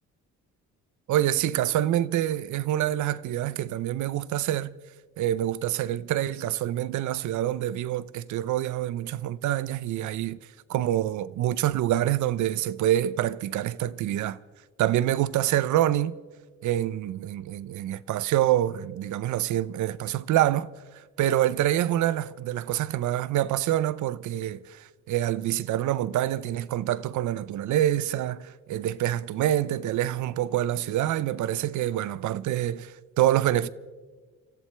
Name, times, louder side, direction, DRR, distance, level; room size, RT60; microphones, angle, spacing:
voice 1, 1.1-4.7 5.2-10.4 10.7-14.4 14.8-16.2 16.6-33.7, right 12 dB, 75° right, 0.6 m, -26 dB
29.5 x 14.0 x 3.3 m
cardioid pair, 90°, 30 cm